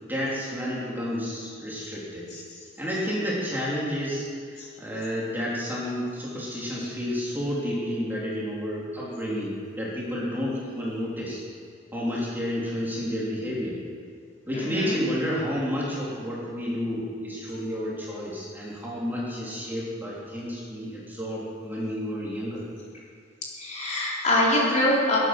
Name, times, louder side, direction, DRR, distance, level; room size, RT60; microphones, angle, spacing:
voice 1, 0.0-2.3 2.8-4.3 4.8-11.4 11.9-13.8 14.5-22.6, equal, 10° right, -7 dB, 3.4 m, -30 dB
voice 2, 14.5-15.0 23.6-25.2, left 1 dB, 40° left, -6 dB, 3.9 m, -24 dB
21.0 x 9.1 x 6.1 m, 2.1 s
head